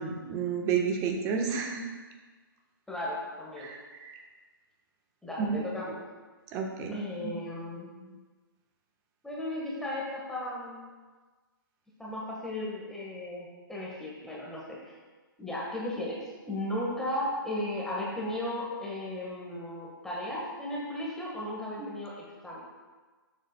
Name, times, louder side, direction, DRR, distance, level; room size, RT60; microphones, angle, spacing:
voice 1, 0.0-1.8 3.6-4.2 5.4-5.6 6.5-7.3, right 6 dB, 25° right, 2 dB, 1.1 m, -31 dB
voice 2, 2.9-3.7 5.2-6.0 6.9-8.2 9.2-10.8 12.0-14.9 15.4-16.2 16.5-22.6, left 1 dB, 5° left, -5 dB, 1.4 m, -35 dB
11.5 x 7.2 x 2.2 m, 1.4 s
hypercardioid pair, 130°, 12 cm